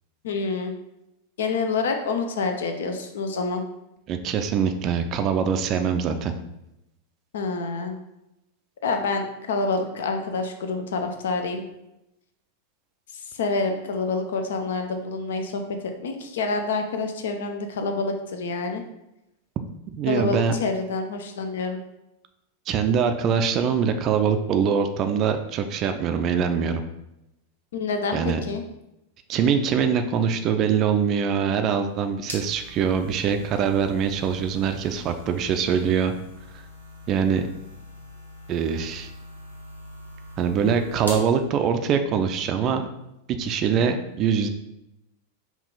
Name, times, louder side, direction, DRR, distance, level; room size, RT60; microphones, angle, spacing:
voice 1, 0.2-0.7 1.4-3.6 7.3-8.0 8.8-11.6 13.3-18.8 20.1-21.8 27.7-28.6, left 4 dB, 60° left, 5 dB, 0.5 m, -27 dB
voice 2, 4.1-6.3 19.9-20.5 22.7-26.8 28.1-28.4 29.3-36.1 36.5-36.6 37.1-37.5 38.5-39.1 40.4-42.9 43.3-44.5, right 7 dB, 35° right, 7 dB, 0.4 m, -23 dB
sound 1, 31.7-41.3, left 1 dB, 85° left, 1.1 m, -42 dB
5.3 x 2.4 x 3.8 m, 0.88 s
figure-of-eight pair, 90°, 0 cm